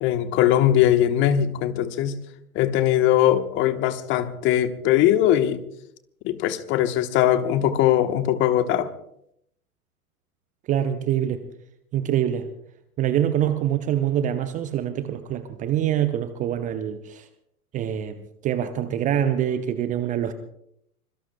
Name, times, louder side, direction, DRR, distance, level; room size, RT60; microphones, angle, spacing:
voice 1, 0.0-2.2 2.5-5.6 6.2-8.9, left 11 dB, 25° left, 10 dB, 1.1 m, -20 dB
voice 2, 10.7-11.4 11.9-12.5 13.0-17.3 17.7-20.3, right 10 dB, 15° right, 11 dB, 0.7 m, -25 dB
25.5 x 23.0 x 2.2 m, 0.73 s
figure-of-eight pair, 105°, 45 cm